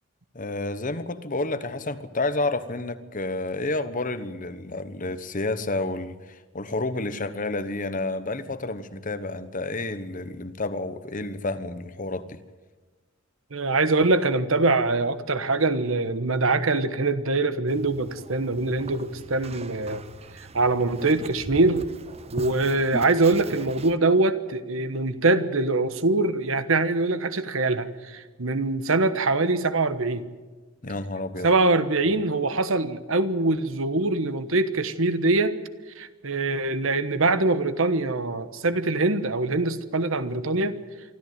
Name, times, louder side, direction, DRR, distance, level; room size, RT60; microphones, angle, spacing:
voice 1, 0.3-12.4 30.8-31.5, left 2 dB, 35° left, 12 dB, 1.1 m, -30 dB
voice 2, 13.5-20.0 20.3-21.9 22.3-30.2 31.4-35.6 35.9-40.8, right 2 dB, 65° right, 12 dB, 1.3 m, -23 dB
sound 1, 17.7-24.0, right 2 dB, 30° right, 0.8 m, -40 dB
24.5 x 13.5 x 9.4 m, 1.3 s
head